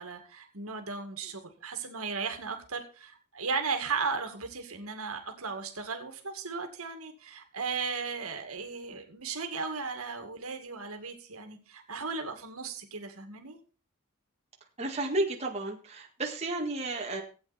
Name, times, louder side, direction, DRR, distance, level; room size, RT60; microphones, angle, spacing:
voice 1, 0.0-13.6, right 5 dB, 80° right, 5 dB, 2.2 m, -36 dB
voice 2, 14.8-17.2, right 2 dB, 30° right, 0 dB, 2.0 m, -32 dB
16.0 x 8.5 x 4.3 m, 0.36 s
head